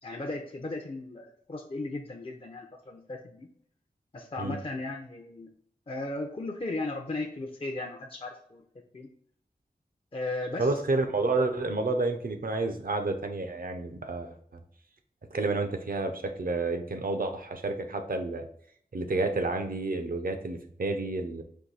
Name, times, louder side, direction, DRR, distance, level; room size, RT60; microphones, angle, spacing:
voice 1, 0.0-3.5 4.1-5.5 5.9-8.6 8.9-9.1 10.1-10.7, left 2 dB, 35° left, 1 dB, 0.5 m, -36 dB
voice 2, 10.6-14.6 15.3-18.5 18.9-21.4, right 3 dB, 65° right, 6 dB, 0.7 m, -30 dB
4.5 x 2.6 x 4.0 m, 0.63 s
wide cardioid pair, 70°, 16 cm